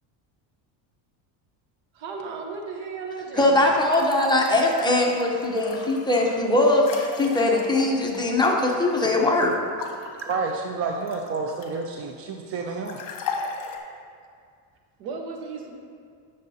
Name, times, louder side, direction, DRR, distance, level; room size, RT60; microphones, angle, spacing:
voice 1, 1.9-3.7 15.0-15.8, right 4 dB, 75° right, 2 dB, 1.2 m, -35 dB
voice 2, 3.3-9.5, left 2 dB, 10° left, -2 dB, 0.9 m, -21 dB
sound 1, 3.8-9.3 9.8-11.9 12.9-13.8, left 5 dB, 45° left, 1.2 m, -38 dB
voice 3, 10.2-13.0, right 4 dB, 30° right, 2 dB, 0.4 m, -29 dB
11.5 x 6.4 x 2.8 m, 2.2 s
cardioid pair, 135°, 47 cm